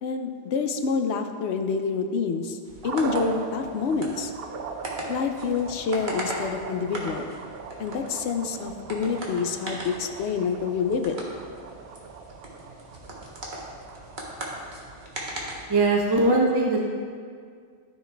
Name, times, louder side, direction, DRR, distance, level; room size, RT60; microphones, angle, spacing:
voice 1, 0.0-2.6 2.8-4.3 5.1-7.3 7.8-11.2, left 5 dB, 70° left, 6 dB, 0.9 m, -27 dB
sound 1, 2.6-16.2, right 1 dB, 45° right, 1.3 m, -39 dB
sound 2, 2.8-15.1, right 5 dB, 65° right, 0.7 m, -40 dB
voice 2, 15.7-16.9, right 2 dB, 25° right, -2 dB, 0.7 m, -21 dB
13.0 x 4.5 x 3.3 m, 2.1 s
omnidirectional pair, 1.2 m